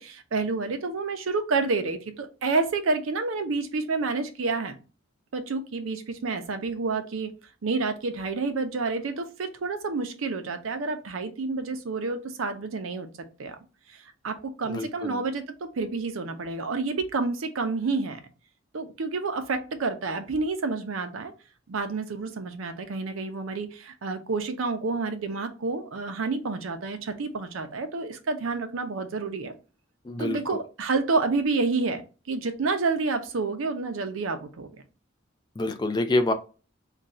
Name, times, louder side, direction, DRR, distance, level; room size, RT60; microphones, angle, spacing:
voice 1, 0.0-4.8 5.3-7.3 7.6-13.6 13.9-18.2 18.7-21.3 21.7-29.5 30.2-34.8, right 3 dB, 90° right, 0.5 m, -29 dB
voice 2, 14.7-15.2 30.1-30.4 35.6-36.3, left 2 dB, 20° left, 0.3 m, -26 dB
2.4 x 2.3 x 4.0 m
head